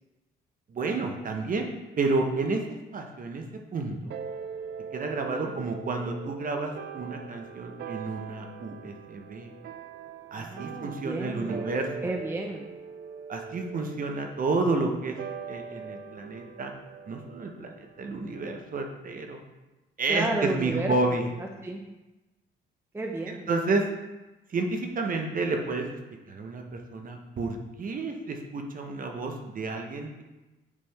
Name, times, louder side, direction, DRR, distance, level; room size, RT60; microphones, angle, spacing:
voice 1, 0.7-1.7 2.0-2.6 2.9-3.4 3.7-4.2 4.9-9.5 10.3-12.1 13.3-15.2 15.5-16.7 17.1-17.7 18.0-19.4 20.0-21.3 23.3-23.8 24.5-26.0 26.3-26.6 26.9-30.2, right 3 dB, 45° right, 3 dB, 0.9 m, -30 dB
sound 1, 4.1-18.8, right 6 dB, 60° right, 0.4 m, -42 dB
voice 2, 5.3-5.6 10.4-11.7 12.0-12.7 20.1-21.8 22.9-23.5, right 2 dB, 10° right, 2 dB, 0.5 m, -33 dB
8.3 x 3.5 x 3.4 m, 1.1 s
cardioid pair, 90°, 20 cm